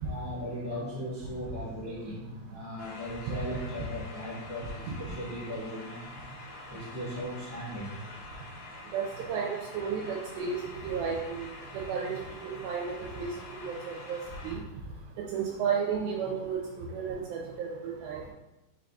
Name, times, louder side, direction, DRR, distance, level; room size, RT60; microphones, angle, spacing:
voice 1, 0.0-6.1 6.7-8.0, equal, 80° left, -12 dB, 0.7 m, -38 dB
sound 1, 2.8-14.6, left 2 dB, 60° left, 2.0 m, -46 dB
voice 2, 8.9-11.5 11.7-12.1 12.4-12.9 13.2-13.3 13.6-14.6 15.3-16.6 16.9-18.2, right 6 dB, 80° right, -1 dB, 2.3 m, -33 dB
5.8 x 3.8 x 2.3 m, 0.96 s
omnidirectional pair, 4.3 m